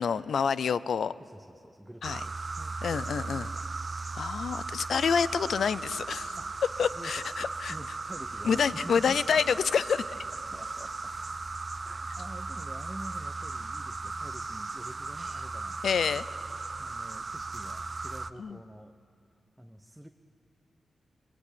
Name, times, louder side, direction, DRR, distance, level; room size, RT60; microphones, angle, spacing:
voice 1, 0.0-1.1 2.0-2.2 2.8-3.5 4.2-6.4 6.8-7.7 8.4-10.1 15.8-16.2 18.4-18.6, left 6 dB, 75° left, 17 dB, 0.6 m, -28 dB
voice 2, 1.2-3.6 6.4-6.5 6.9-9.2 10.5-11.1 11.7-16.2 16.8-19.0 19.6-20.1, right 1 dB, 5° right, 6 dB, 0.9 m, -47 dB
sound 1, 2.0-18.3, right 3 dB, 35° right, 0.6 m, -37 dB
25.0 x 22.0 x 8.6 m, 2.4 s
wide cardioid pair, 100°, 0 cm